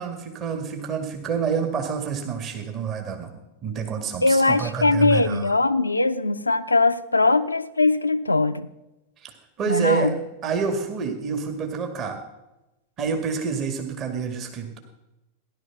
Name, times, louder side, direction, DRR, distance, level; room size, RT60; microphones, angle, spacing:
voice 1, 0.0-3.3 3.6-5.5 9.2-10.1 10.4-12.2 13.0-14.8, right 6 dB, 30° right, 5 dB, 2.2 m, -28 dB
voice 2, 4.2-8.7 9.7-10.2, left 3 dB, 80° left, 11 dB, 0.6 m, -21 dB
17.0 x 11.5 x 6.1 m, 0.99 s
figure-of-eight pair, 90°, 0 cm